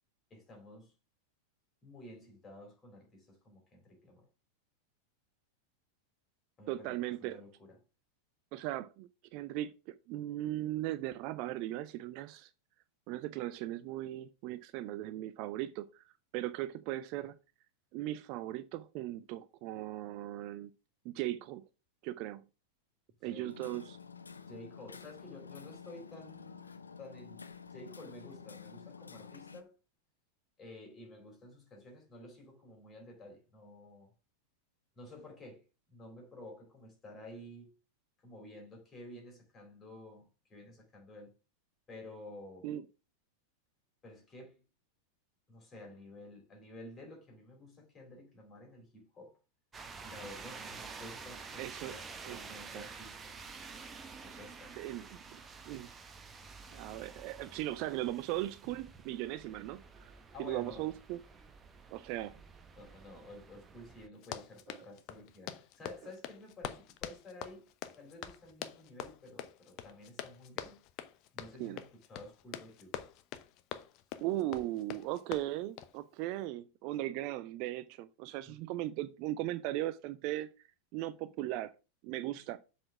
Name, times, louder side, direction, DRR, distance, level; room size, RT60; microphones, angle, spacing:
voice 1, 0.3-0.9 1.8-4.3 6.6-7.8 17.1-17.3 23.2-23.6 24.5-26.7 27.0-27.4 27.7-29.7 30.6-34.1 34.9-35.6 35.9-37.7 38.2-41.4 41.9-42.7 44.0-44.6 45.5-49.4 50.0-53.4 54.2-54.8 60.3-60.9 62.7-67.7 68.0-70.8 71.3-73.0 78.5-78.6 82.3-82.4, left 1 dB, 20° left, 3.9 m, -52 dB
voice 2, 6.7-7.4 8.5-12.5 13.1-16.0 16.3-17.4 17.9-20.7 21.0-21.6 22.0-22.4 23.2-24.0 42.6-42.8 51.6-52.0 52.2-52.4 52.7-52.9 54.3-54.4 54.8-56.0 56.7-60.1 60.4-61.2 61.9-62.4 64.7-64.8 71.6-71.8 74.2-80.5 80.9-81.7 82.0-82.6, right 15 dB, 45° right, 0.4 m, -38 dB
Hammer, 23.5-29.6, left 6 dB, 75° left, 0.7 m, -50 dB
sound 1, 49.7-64.1, right 5 dB, 20° right, 1.0 m, -50 dB
Run, 64.1-76.0, left 11 dB, 40° left, 0.7 m, -45 dB
7.5 x 4.3 x 5.8 m
figure-of-eight pair, 90°, 0 cm